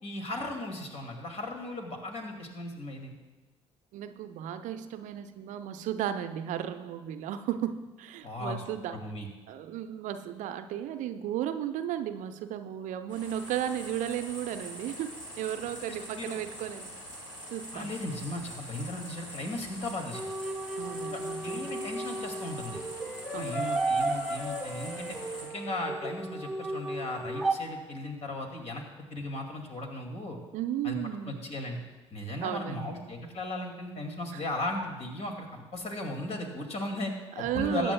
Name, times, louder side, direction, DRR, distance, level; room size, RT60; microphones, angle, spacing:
voice 1, 0.0-3.1 8.2-8.6 8.9-9.3 15.9-16.4 17.7-20.3 21.1-22.8 23.3-25.2 25.4-28.8 29.1-30.4 30.8-31.0 31.3-31.8 32.1-37.9, left 2 dB, 40° left, 3 dB, 2.3 m, -36 dB
voice 2, 3.9-9.0 9.5-15.1 15.4-16.9 17.5-17.9 20.8-21.7 23.3-23.7 30.5-31.4 32.4-32.9 34.3-34.4 37.4-37.9, right 10 dB, 55° right, 9 dB, 0.6 m, -34 dB
sound 1, 13.1-25.4, equal, 85° left, 2.3 m, -44 dB
sound 2, 20.1-27.6, right 2 dB, ahead, 1.1 m, -34 dB
21.5 x 8.8 x 2.3 m, 1.2 s
figure-of-eight pair, 50°, 16 cm